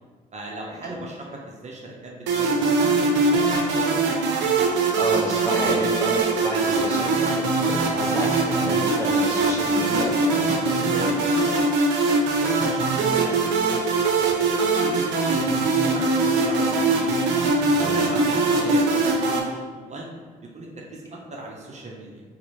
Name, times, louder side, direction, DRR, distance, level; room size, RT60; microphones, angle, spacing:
voice 1, 0.3-4.0 12.2-17.1 17.6-20.1 20.4-22.2, right 2 dB, 40° right, -1 dB, 0.8 m, -38 dB
sound 1, 2.3-19.4, right 3 dB, 75° right, 0.6 m, -22 dB
voice 2, 5.0-10.5 10.7-11.6 17.9-18.1, left 1 dB, 15° left, -3 dB, 1.2 m, -31 dB
3.1 x 2.9 x 4.0 m, 1.5 s
hypercardioid pair, 55°, 18 cm